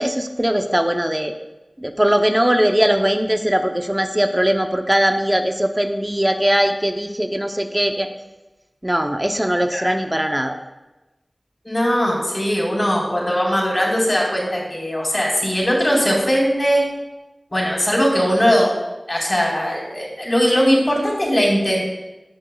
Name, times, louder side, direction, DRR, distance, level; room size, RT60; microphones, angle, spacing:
voice 1, 0.0-1.3 1.8-8.1 8.8-10.6, right 1 dB, 15° right, 5 dB, 0.7 m, -20 dB
voice 2, 11.6-16.8 17.5-18.7 19.1-21.8, equal, 35° left, -3 dB, 4.1 m, -19 dB
16.5 x 10.5 x 2.3 m, 1.1 s
wide cardioid pair, 60°, 0 cm